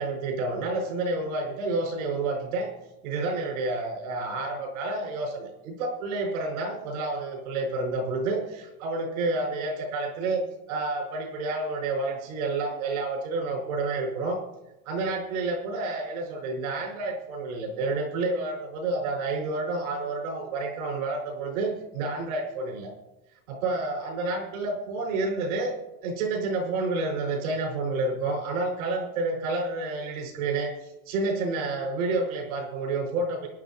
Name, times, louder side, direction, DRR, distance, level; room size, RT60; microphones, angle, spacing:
voice 1, 0.0-2.7 3.0-10.4 10.7-14.4 14.8-22.9 23.5-25.7 26.0-33.5, right 3 dB, 90° right, -1 dB, 5.1 m, -29 dB
25.0 x 10.5 x 2.9 m, 1.0 s
supercardioid pair, 125°, 41 cm